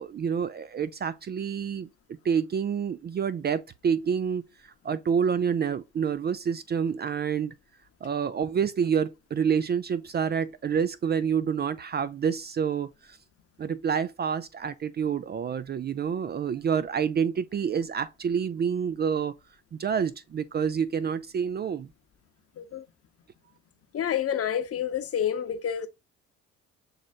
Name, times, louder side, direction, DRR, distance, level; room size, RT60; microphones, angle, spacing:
voice 1, 0.0-7.5 8.0-13.2 13.6-19.3 19.7-21.9, right 7 dB, 30° right, 0.4 m, -28 dB
voice 2, 23.9-25.9, left 9 dB, 45° left, 0.9 m, -28 dB
6.5 x 3.1 x 2.3 m
hypercardioid pair, 60°, 33 cm